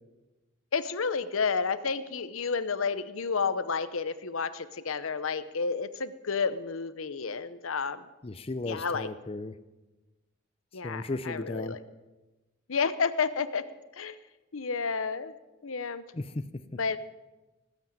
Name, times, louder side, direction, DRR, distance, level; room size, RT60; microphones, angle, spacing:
voice 1, 0.7-8.0 8.7-9.1 10.7-11.8 12.7-13.6 14.0-14.2 14.5-15.3 15.6-16.0 16.8-17.0, left 5 dB, 85° left, 13 dB, 0.8 m, -31 dB
voice 2, 8.2-9.5 10.8-11.8 16.1-16.6, left 2 dB, 30° left, 11 dB, 0.6 m, -35 dB
18.5 x 8.3 x 7.4 m, 1.1 s
head